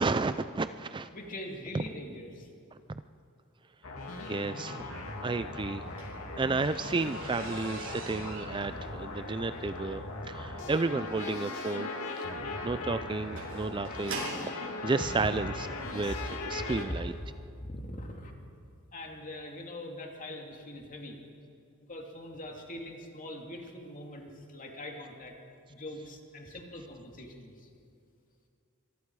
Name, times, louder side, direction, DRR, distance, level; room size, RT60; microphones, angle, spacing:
voice 1, 0.0-1.1 4.3-6.0 6.3-10.0 10.3-11.9 12.6-15.5 15.9-16.1 16.4-17.1, right 3 dB, 20° right, 12 dB, 0.4 m, -32 dB
voice 2, 1.1-2.5 8.8-8.9 15.0-15.3 15.8-17.3 17.6-18.3 18.9-21.2 21.9-25.3 25.7-27.7, left 1 dB, 40° left, 1 dB, 2.7 m, -42 dB
sound 1, 3.8-16.9, left 2 dB, 80° left, 2.5 m, -39 dB
sound 2, 5.7-14.6 15.5-15.6 16.1-16.4 16.6-16.7 17.1-17.2, right 3 dB, 80° right, 7.2 m, -43 dB
25.5 x 22.5 x 4.8 m, 2.4 s
head